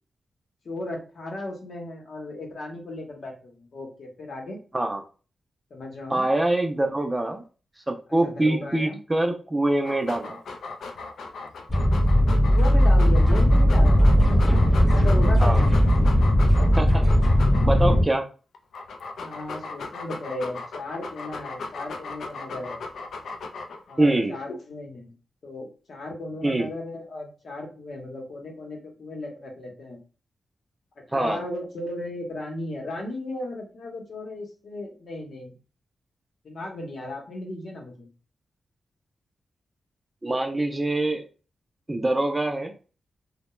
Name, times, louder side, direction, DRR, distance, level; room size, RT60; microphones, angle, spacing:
voice 1, 0.6-4.6 5.7-6.3 8.2-9.0 11.8-15.8 19.2-22.8 23.9-25.1 25.4-30.0 31.0-35.5 36.4-38.1, left 2 dB, 60° left, 1 dB, 0.8 m, -36 dB
voice 2, 6.1-7.4 7.9-10.4 15.4-15.6 16.8-17.0 17.6-18.2 24.0-24.4 26.4-26.7 31.1-31.4 40.2-41.2 41.9-42.7, right 2 dB, 20° right, 4 dB, 0.4 m, -24 dB
Dog, 9.7-18.0 18.5-23.9, left 3 dB, 85° left, 0.3 m, -37 dB
sound 1, 11.7-18.0, equal, 20° left, 0.8 m, -18 dB
2.2 x 2.1 x 3.0 m, 0.36 s
wide cardioid pair, 110°, 0 cm